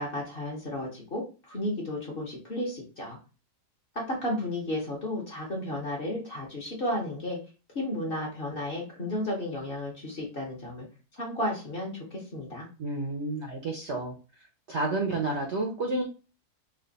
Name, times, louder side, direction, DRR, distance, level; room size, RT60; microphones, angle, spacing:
voice 1, 0.0-3.2 3.9-7.4 7.7-10.9 11.1-12.7, left 1 dB, 40° left, -1 dB, 0.9 m, -33 dB
voice 2, 12.8-14.2 14.7-16.0, right 2 dB, 60° right, 1 dB, 0.7 m, -30 dB
3.3 x 2.4 x 3.9 m, 0.34 s
omnidirectional pair, 1.8 m